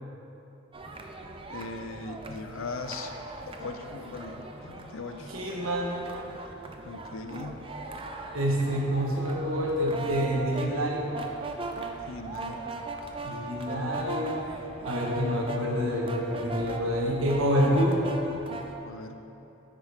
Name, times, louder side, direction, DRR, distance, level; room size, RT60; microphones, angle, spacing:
sound 1, 0.7-18.7, right 2 dB, 25° right, 0.5 m, -39 dB
voice 1, 1.5-3.1 3.5-5.3 6.8-7.6 12.1-12.6 18.8-19.3, left 3 dB, 80° left, 7 dB, 0.6 m, -39 dB
voice 2, 5.3-6.0 8.3-11.0 13.2-14.4 14.8-18.0, equal, 90° right, -2 dB, 1.5 m, -27 dB
9.8 x 8.1 x 3.7 m, 2.8 s
head